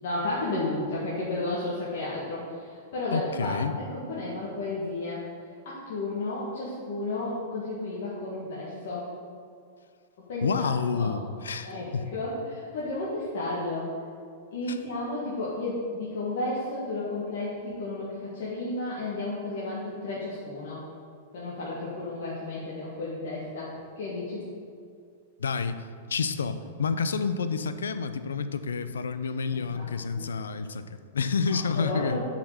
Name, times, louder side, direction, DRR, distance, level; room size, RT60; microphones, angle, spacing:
voice 1, 0.0-5.2 5.7-9.1 10.3-11.1 11.7-11.9 12.1-13.9 14.5-20.8 21.3-23.7 24.0-24.4 29.5-29.9 30.2-30.3 31.5-32.3, left 2 dB, 65° left, -7 dB, 1.7 m, -32 dB
voice 2, 3.1-3.8 10.4-12.1 14.7-14.8 25.4-32.2, left 5 dB, 80° left, 11 dB, 0.5 m, -29 dB
6.9 x 5.0 x 6.7 m, 2.3 s
hypercardioid pair, 110°, 0 cm